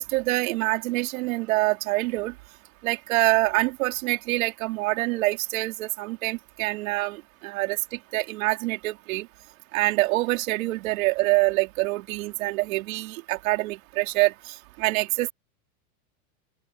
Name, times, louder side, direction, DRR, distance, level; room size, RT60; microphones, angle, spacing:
voice 1, 0.0-2.3 2.8-9.3 9.7-15.3, right 20 dB, 70° right, 4.1 m, -26 dB
open air
supercardioid pair, 145°, 43 cm